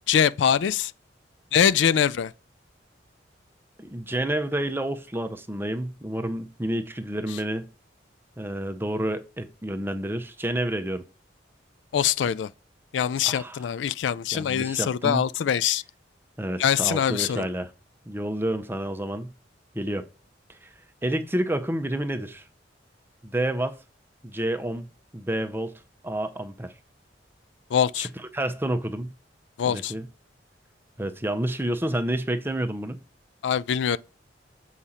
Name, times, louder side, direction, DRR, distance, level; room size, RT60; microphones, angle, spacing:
voice 1, 0.1-0.9 1.5-2.3 11.9-12.5 12.9-15.8 16.6-17.5 27.7-28.1 29.6-29.9 33.4-34.0, left 8 dB, 75° left, 0.3 m, -23 dB
voice 2, 3.8-7.7 8.4-11.0 13.2-13.6 14.3-15.2 16.4-17.7 18.1-19.3 19.7-20.1 20.5-20.7 21.0-22.4 23.2-23.8 24.2-24.9 25.1-25.7 26.0-26.7 28.0-28.1 28.3-29.1 29.6-30.1 31.0-33.0, right 1 dB, 10° right, 0.7 m, -29 dB
7.3 x 4.9 x 4.2 m
head